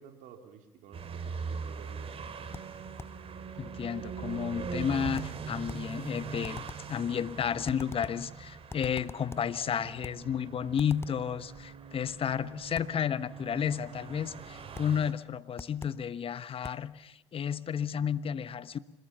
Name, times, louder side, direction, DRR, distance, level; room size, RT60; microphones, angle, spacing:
voice 1, 0.0-2.3, right 7 dB, 65° right, 5 dB, 3.6 m, -52 dB
sound 1, 0.9-15.1, right 6 dB, 40° right, 3.2 m, -41 dB
sound 2, 2.5-3.3 5.2-6.0 6.4-7.0 7.7-8.3 8.7-9.6 10.0-10.3 10.8-11.3 12.7-13.0 14.7-15.0 15.6-16.1 16.6-16.9, left 3 dB, 15° left, 0.9 m, -45 dB
voice 2, 3.6-6.6 6.9-18.8, left 8 dB, 40° left, 15 dB, 1.2 m, -32 dB
26.5 x 21.5 x 7.0 m, 1.0 s
hypercardioid pair, 65°, 14 cm